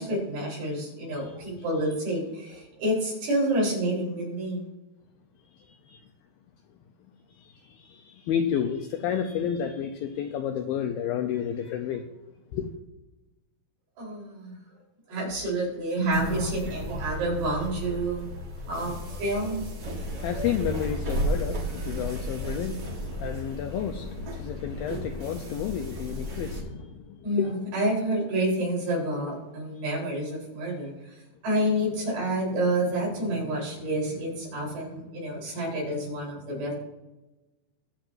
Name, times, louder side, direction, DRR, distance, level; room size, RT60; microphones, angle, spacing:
voice 1, 0.0-4.6 14.0-14.6 15.1-18.4 18.7-19.6 27.2-36.7, right 1 dB, 60° right, -3 dB, 5.8 m, -29 dB
voice 2, 7.4-12.1 12.5-12.7 20.0-27.5, left 8 dB, 85° left, 5 dB, 2.0 m, -31 dB
sound 1, 16.1-26.6, right 1 dB, 85° right, 0.9 m, -34 dB
22.0 x 7.6 x 2.6 m, 1.1 s
omnidirectional pair, 4.8 m